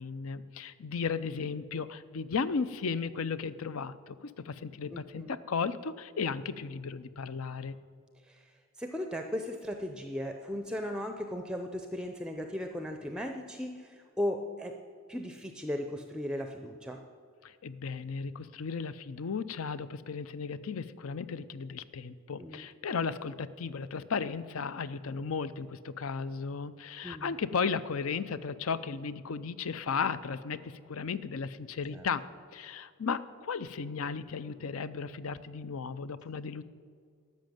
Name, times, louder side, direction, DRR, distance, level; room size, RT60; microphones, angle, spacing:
voice 1, 0.0-7.8 17.4-32.2 32.5-36.6, left 5 dB, 70° left, 15 dB, 0.5 m, -35 dB
voice 2, 4.9-5.4 8.2-8.5 8.8-14.8 15.1-17.0 22.4-22.6 27.0-27.3 31.9-32.0, left 1 dB, 5° right, 5 dB, 0.5 m, -37 dB
13.0 x 6.4 x 9.1 m, 2.1 s
head